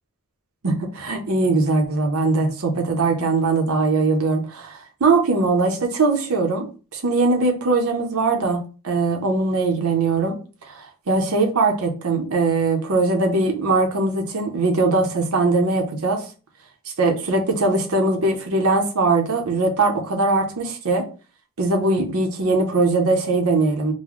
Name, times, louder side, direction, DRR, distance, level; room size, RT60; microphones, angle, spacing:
voice 1, 0.6-6.7 6.9-10.3 10.7-10.8 11.1-16.2 17.0-21.0 21.6-23.9, right 3 dB, 70° right, 2 dB, 0.8 m, -21 dB
3.9 x 2.1 x 3.1 m, 0.35 s
head